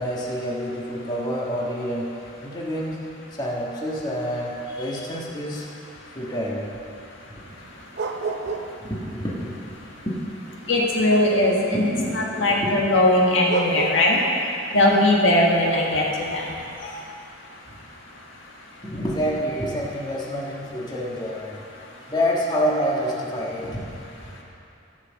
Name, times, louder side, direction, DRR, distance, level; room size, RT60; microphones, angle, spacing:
voice 1, 0.0-2.1 2.4-3.0 3.4-5.6 6.1-6.7 8.9-9.6 10.0-10.2 10.4-10.7 11.7-12.7 18.8-21.6 22.1-23.8, equal, 20° left, -5 dB, 1.5 m, -27 dB
sound 1, 7.5-8.9 9.1-11.5 13.2-13.3 13.5-13.9, right 3 dB, 60° right, 0.7 m, -31 dB
voice 2, 10.7-14.2 14.7-16.5 16.8-16.9, left 1 dB, 65° left, -2 dB, 1.7 m, -20 dB
14.0 x 5.8 x 7.2 m, 2.6 s
head